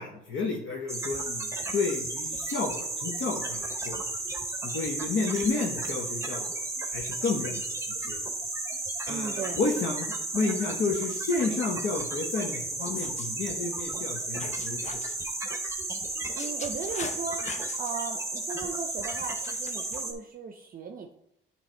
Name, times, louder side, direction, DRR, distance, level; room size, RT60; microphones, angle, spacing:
voice 1, 0.0-4.0 4.6-7.6 8.0-8.2 9.0-15.0, left 4 dB, 65° left, -1 dB, 1.1 m, -31 dB
sound 1, 0.9-20.1, right 2 dB, 15° right, 1.0 m, -33 dB
voice 2, 9.1-9.6 16.3-21.1, right 5 dB, 40° right, 5 dB, 0.6 m, -37 dB
sound 2, 12.8-13.3 14.4-15.2 16.0-17.9 19.2-20.0, left 5 dB, 35° left, 0.7 m, -41 dB
8.9 x 3.3 x 4.4 m, 0.78 s
cardioid pair, 105°, 21 cm